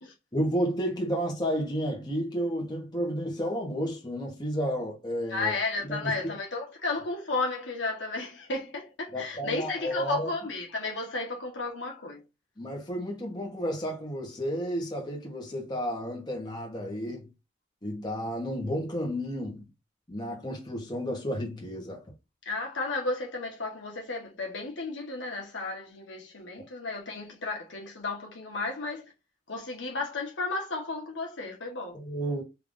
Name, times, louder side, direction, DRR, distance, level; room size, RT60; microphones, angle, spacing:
voice 1, 0.3-5.5 6.0-6.3 9.1-10.3 12.6-17.3 17.8-19.7 20.1-22.0 31.9-32.4, equal, 25° left, 1.1 m, -32 dB
voice 2, 5.3-12.2 22.4-29.1 29.5-32.0, left 3 dB, 75° left, 1.3 m, -33 dB
3.4 x 2.7 x 3.6 m
head